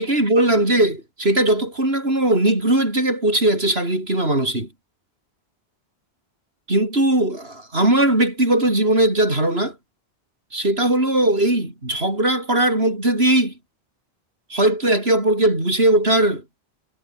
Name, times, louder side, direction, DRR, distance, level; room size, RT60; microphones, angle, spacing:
voice 1, 0.0-4.7 6.7-9.8 10.5-13.5 14.5-16.4, right 1 dB, 75° right, 7.1 m, -19 dB
omnidirectional pair, 1.1 m